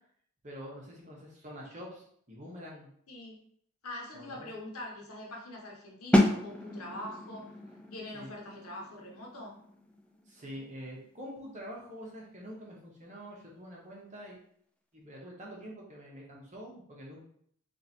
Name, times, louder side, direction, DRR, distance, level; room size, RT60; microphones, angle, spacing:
voice 1, 0.4-2.9 4.1-4.5 8.1-8.3 10.3-14.4 14.9-17.2, equal, 35° right, -3 dB, 1.2 m, -46 dB
voice 2, 3.1-3.4 3.8-7.5 7.9-9.5, left 1 dB, 75° left, -1 dB, 1.1 m, -43 dB
sound 1, 6.1-11.8, left 1 dB, 5° left, 0.4 m, -31 dB
3.8 x 2.7 x 4.2 m, 0.65 s
head